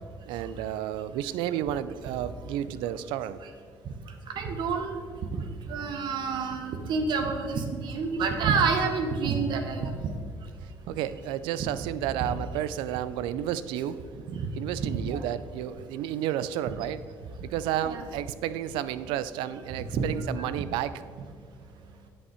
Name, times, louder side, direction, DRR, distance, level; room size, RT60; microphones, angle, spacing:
voice 1, 0.3-3.4 10.9-14.0 14.6-17.0 17.4-20.9, right 11 dB, 80° right, 15 dB, 0.4 m, -31 dB
voice 2, 4.4-5.0 5.7-10.1 12.2-12.3 14.3-14.5 14.8-15.2 17.8-18.0 19.9-20.1 20.4-20.5, right 5 dB, 65° right, 5 dB, 1.1 m, -28 dB
9.7 x 5.2 x 4.9 m, 2.1 s
supercardioid pair, 75°, 8 cm